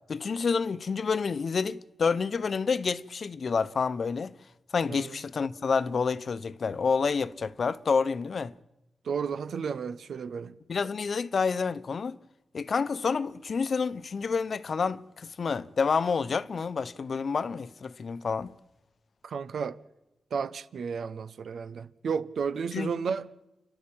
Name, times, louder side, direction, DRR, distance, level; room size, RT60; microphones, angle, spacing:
voice 1, 0.1-4.3 4.7-8.5 10.7-12.2 12.5-18.5 22.7-22.9, left 5 dB, 60° left, 0.9 m, -28 dB
voice 2, 9.0-10.5 19.2-19.8 20.3-23.3, right 6 dB, 80° right, 1.0 m, -32 dB
30.0 x 12.0 x 8.8 m
cardioid pair, 60°, 0 cm